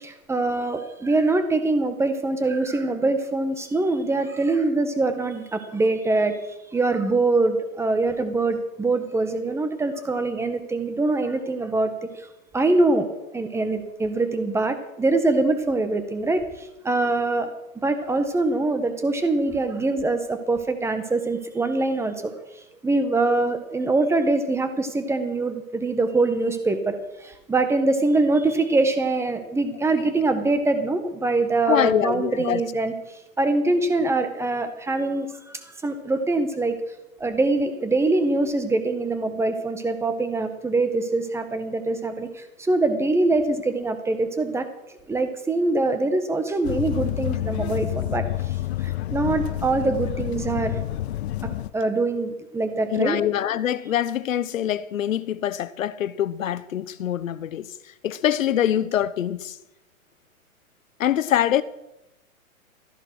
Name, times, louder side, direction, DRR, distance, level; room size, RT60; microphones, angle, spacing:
voice 1, 0.0-6.4 6.7-11.9 12.5-17.5 17.8-22.3 22.8-32.9 33.4-35.3 35.8-36.7 37.2-44.6 45.1-48.2 48.8-50.8 51.4-53.2, right 2 dB, 5° right, 1.4 m, -23 dB
voice 2, 31.7-32.6 52.9-57.7 58.0-59.6 61.0-61.6, left 11 dB, 65° left, 1.0 m, -24 dB
sound 1, 46.6-51.7, left 14 dB, 50° left, 0.7 m, -28 dB
14.0 x 11.0 x 6.3 m
hypercardioid pair, 125°, 42 cm